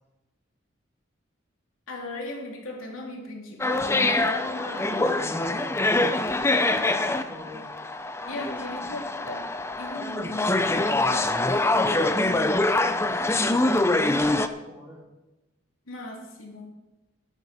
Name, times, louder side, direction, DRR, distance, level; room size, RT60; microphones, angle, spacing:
voice 1, 1.9-4.1 5.0-5.2 8.3-9.5 9.8-11.3 15.9-16.7, left 2 dB, 85° left, 0 dB, 2.9 m, -38 dB
sound 1, 3.6-14.5, left 2 dB, 15° left, 0.6 m, -24 dB
voice 2, 3.8-5.9 6.5-7.7 8.2-8.7 11.4-15.0, equal, 10° right, -6 dB, 5.1 m, -42 dB
13.0 x 12.5 x 4.2 m, 1.0 s
head